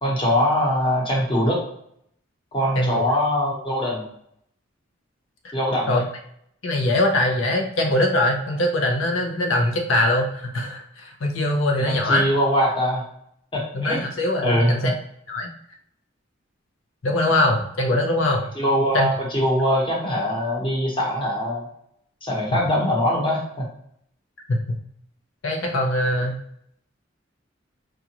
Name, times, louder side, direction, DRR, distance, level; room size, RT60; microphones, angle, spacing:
voice 1, 0.0-1.6 2.5-4.0 5.5-6.0 11.9-13.0 13.5-14.0 14.4-14.9 18.6-21.6 22.2-23.7, equal, 25° left, -2 dB, 1.0 m, -22 dB
voice 2, 6.6-12.3 13.7-14.9 15.3-15.5 17.0-18.5 18.9-19.1 22.5-22.6 24.5-24.8 25.4-26.4, left 1 dB, 80° left, 1 dB, 0.6 m, -22 dB
4.8 x 2.5 x 2.9 m, 0.72 s
head